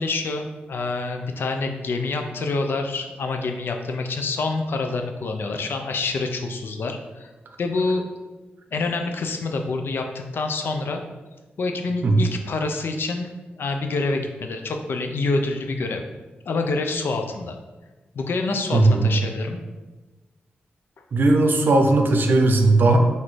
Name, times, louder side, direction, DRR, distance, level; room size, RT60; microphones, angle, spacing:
voice 1, 0.0-7.3 7.6-8.0 8.7-11.0 11.6-16.0 16.5-17.6 18.1-19.6, left 3 dB, 70° left, 4 dB, 0.5 m, -27 dB
voice 2, 18.7-19.1 21.1-23.0, right 2 dB, 60° right, 4 dB, 0.6 m, -17 dB
6.0 x 2.7 x 3.2 m, 1.2 s
wide cardioid pair, 100°, 4 cm